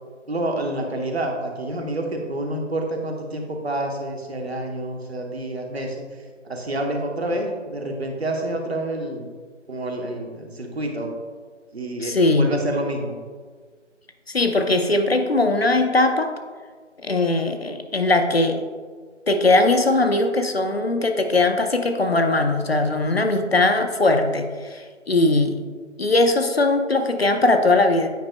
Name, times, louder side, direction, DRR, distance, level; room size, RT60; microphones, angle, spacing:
voice 1, 0.3-6.0 6.4-9.3 9.7-11.1 11.7-13.2, right 1 dB, 55° right, 2 dB, 1.1 m, -28 dB
voice 2, 12.0-12.5 14.3-16.3 17.0-18.6 19.3-24.5 24.7-25.5 26.0-28.1, left 2 dB, 55° left, 6 dB, 0.6 m, -20 dB
9.2 x 5.2 x 2.2 m, 1.5 s
figure-of-eight pair, 170°, 37 cm